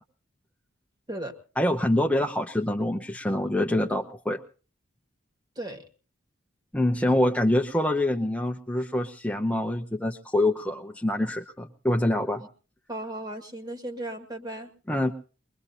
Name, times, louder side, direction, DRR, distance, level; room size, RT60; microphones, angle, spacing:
voice 1, 1.6-4.4 6.7-12.4 14.9-15.1, left 1 dB, 5° left, 2 dB, 0.7 m, -25 dB
voice 2, 12.9-14.7, right 1 dB, 20° right, 5 dB, 1.9 m, -35 dB
22.5 x 21.5 x 2.7 m, 0.37 s
head